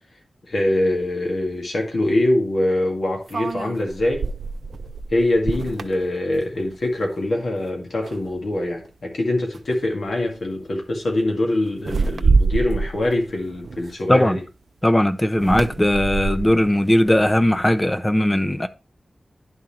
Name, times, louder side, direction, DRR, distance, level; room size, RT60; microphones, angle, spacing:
voice 1, 0.5-4.2 5.1-14.4, left 1 dB, 75° left, 2.0 m, -23 dB
sound 1, 1.0-1.1 3.3-6.9 7.3-7.6 8.0-8.7 9.5-9.7 10.1-10.4 11.8-14.4 15.3-17.7, right 4 dB, 75° right, 0.5 m, -26 dB
voice 2, 14.8-18.7, left 1 dB, 20° left, 0.7 m, -18 dB
11.0 x 3.7 x 4.3 m
wide cardioid pair, 85°, 0 cm